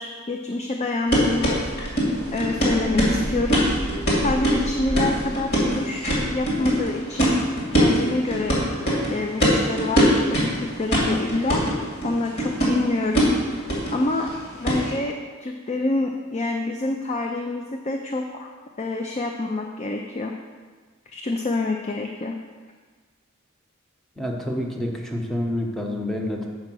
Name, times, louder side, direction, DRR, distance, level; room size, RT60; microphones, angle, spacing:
voice 1, 0.0-1.6 2.3-3.7 4.2-7.3 7.7-8.6 9.1-13.3 13.9-14.3 14.6-18.5 18.8-20.3 21.1-22.4, left 2 dB, 35° left, 3 dB, 0.4 m, -27 dB
sound 1, 1.1-14.9, equal, 50° left, 2.5 m, -23 dB
voice 2, 24.2-26.5, left 1 dB, ahead, 0 dB, 0.9 m, -28 dB
7.6 x 4.7 x 6.1 m, 1.5 s
head